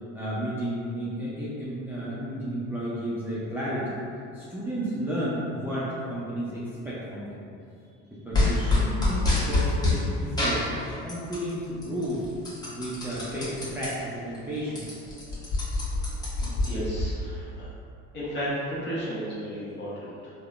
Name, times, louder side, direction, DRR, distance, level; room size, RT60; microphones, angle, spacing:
voice 1, 0.1-4.0 4.3-7.5 8.1-12.2 12.7-14.9, equal, 5° right, -10 dB, 0.5 m, -32 dB
sound 1, 8.3-10.0 10.4-11.5 11.8-13.9 14.3-14.4 14.6-17.1, left 2 dB, 15° left, 0.9 m, -26 dB
voice 2, 16.6-17.7 18.1-20.3, equal, 40° left, -8 dB, 1.1 m, -33 dB
3.5 x 2.1 x 2.4 m, 2.5 s
supercardioid pair, 105°, 29 cm